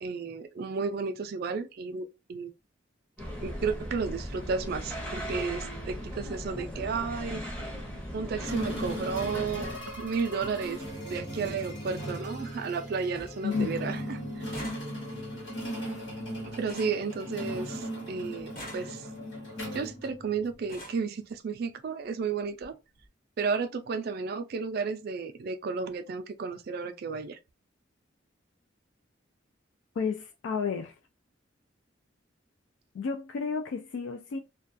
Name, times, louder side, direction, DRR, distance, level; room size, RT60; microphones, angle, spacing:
voice 1, 0.0-2.5 3.4-7.4 8.1-10.8 11.1-14.4 16.5-19.0 19.7-22.7 23.4-27.4, right 5 dB, 50° right, 0.3 m, -33 dB
sound 1, 3.2-9.8, equal, 5° left, 0.6 m, -38 dB
sound 2, 8.4-20.7, equal, 90° left, 1.2 m, -38 dB
sound 3, 11.4-11.6 12.1-12.6 12.8-12.9 13.1-13.5 13.8-17.8 18.4-19.3 20.1-20.2 20.5-21.1 22.0-22.1 22.5-22.7 22.9-23.1, equal, 45° left, 1.1 m, -47 dB
voice 2, 30.0-31.0 32.9-34.4, left 5 dB, 70° left, 0.3 m, -31 dB
2.3 x 2.2 x 2.5 m
head